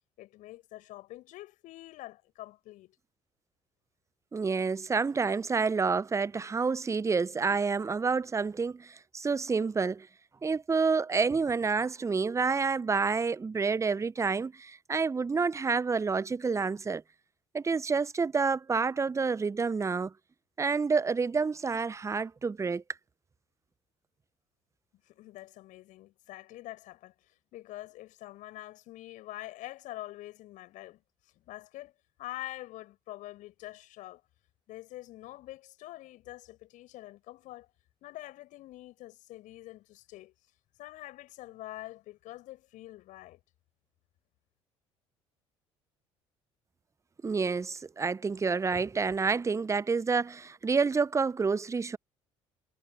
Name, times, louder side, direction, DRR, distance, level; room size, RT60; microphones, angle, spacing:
voice 1, 0.2-3.0 25.0-31.0 31.3-34.2 34.7-37.7 38.0-40.3 40.8-43.4, left 16 dB, 55° left, 8.0 m, -45 dB
voice 2, 4.3-10.1 10.4-17.0 17.5-20.1 20.6-22.8 47.2-52.0, right 4 dB, 20° right, 0.8 m, -28 dB
figure-of-eight pair, 55°, 15 cm